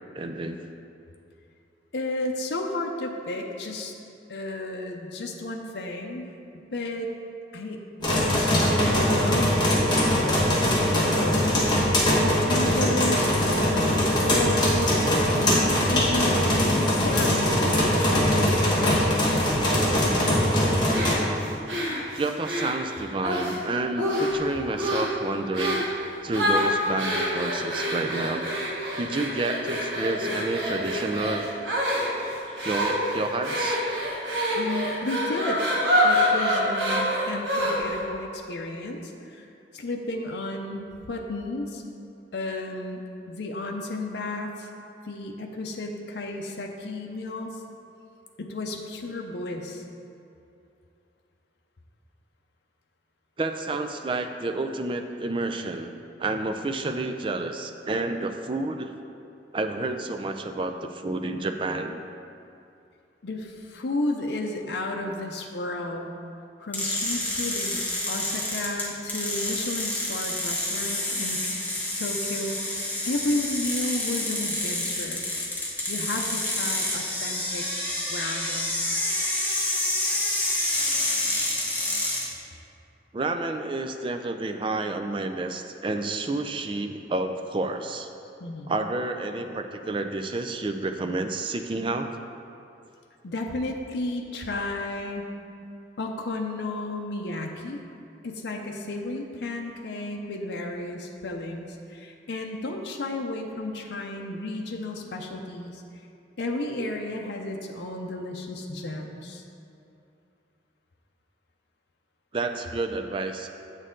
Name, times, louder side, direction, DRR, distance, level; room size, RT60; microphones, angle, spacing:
voice 1, 0.1-0.6 22.1-25.8 26.2-28.4 29.0-31.5 32.5-33.8 53.4-55.9 56.2-58.9 59.5-62.0 83.1-88.1 88.7-92.1 112.3-113.5, right 2 dB, 30° right, 6 dB, 0.4 m, -30 dB
voice 2, 1.9-3.9 4.3-6.2 6.7-7.1 7.5-11.4 11.9-15.0 15.3-19.6 34.6-35.6 36.0-39.5 39.7-41.8 42.3-43.0 43.3-44.7 45.0-47.6 48.4-49.8 63.2-66.1 66.6-71.6 72.0-75.3 75.9-77.6 78.1-78.8 88.4-88.7 93.2-95.3 96.0-97.8 98.2-105.8 106.4-109.4, left 2 dB, 80° left, 1 dB, 0.6 m, -33 dB
sound 1, 8.0-21.1, left 1 dB, 25° left, 1.4 m, -22 dB
sound 2, 20.9-23.6 24.0-24.5 24.8-25.1 25.5-25.9 26.3-38.0, equal, 85° right, 1.5 m, -26 dB
sound 3, 66.7-82.3, left 1 dB, 10° left, 1.2 m, -28 dB
8.0 x 6.5 x 3.8 m, 2.7 s
head